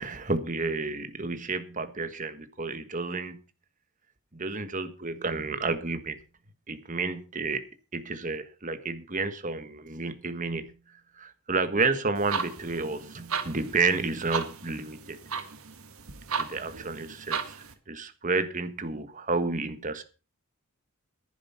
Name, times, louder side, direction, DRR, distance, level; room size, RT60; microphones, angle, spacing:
voice 1, 0.0-3.4 4.4-6.2 6.7-7.6 7.9-10.7 11.2-15.2 16.4-17.4 17.9-20.0, right 3 dB, 35° right, 1.4 m, -30 dB
sound 1, 12.1-17.7, right 6 dB, 80° right, 1.7 m, -36 dB
11.0 x 10.0 x 5.7 m
head